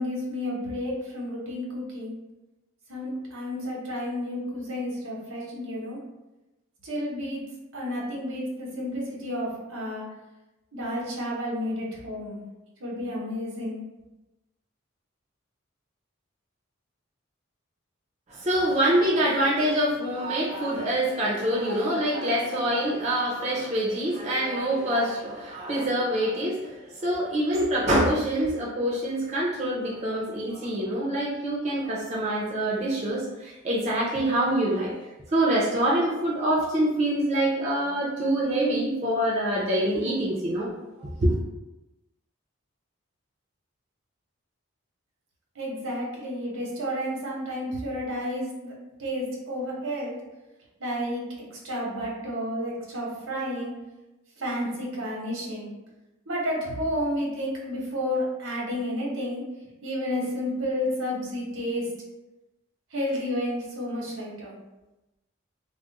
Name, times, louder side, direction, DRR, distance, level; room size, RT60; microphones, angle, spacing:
voice 1, 0.0-2.1 2.9-6.0 6.8-7.4 7.7-10.0 10.7-12.4 12.8-13.8 45.6-48.7 49.0-50.1 50.8-51.2 51.5-53.7 54.4-55.7 56.3-59.4 59.8-61.9 62.9-64.5, equal, 80° right, -3 dB, 0.9 m, -31 dB
voice 2, 18.4-34.9 35.3-40.7 41.0-41.3, right 1 dB, 35° right, -5 dB, 0.5 m, -25 dB
2.4 x 2.0 x 3.9 m, 1.0 s
head